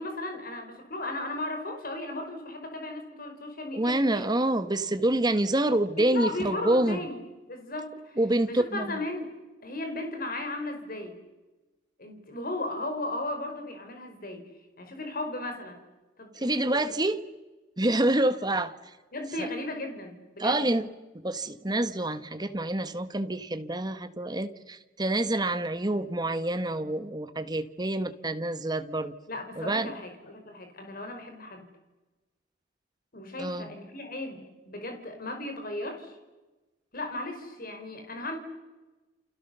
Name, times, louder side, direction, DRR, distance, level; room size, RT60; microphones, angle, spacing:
voice 1, 0.0-4.2 6.0-7.2 7.5-8.2 8.4-9.3 9.6-11.2 12.0-14.4 14.8-15.8 16.2-16.9 19.1-20.6 29.3-31.7 33.1-36.1 36.9-38.4, left 2 dB, 50° left, 5 dB, 4.8 m, -36 dB
voice 2, 3.7-7.0 8.2-9.0 16.4-17.2 17.8-18.8 19.4-19.5 20.4-20.9 21.2-29.1 29.6-29.9 33.4-33.7, right 1 dB, 20° right, 10 dB, 1.4 m, -27 dB
29.5 x 28.5 x 6.9 m, 1.2 s
head